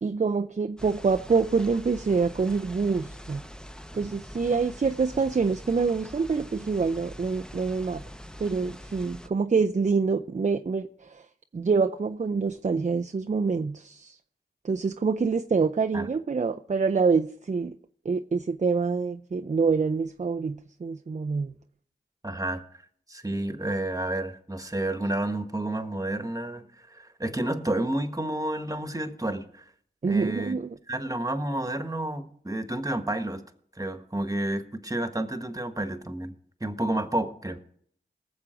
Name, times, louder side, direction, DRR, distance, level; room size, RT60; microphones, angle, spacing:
voice 1, 0.0-3.4 3.9-8.0 8.4-11.3 11.5-14.2 14.6-17.8 18.0-21.5 30.0-30.7, right 4 dB, 40° right, 0.5 m, -26 dB
sound 1, 0.8-9.3, equal, 5° left, 0.8 m, -44 dB
voice 2, 22.2-22.6 23.1-29.6 30.1-30.6 30.9-33.4 33.8-36.3 36.6-37.6, right 1 dB, 20° right, 1.4 m, -30 dB
19.0 x 7.3 x 5.1 m
cardioid pair, 40°, 20 cm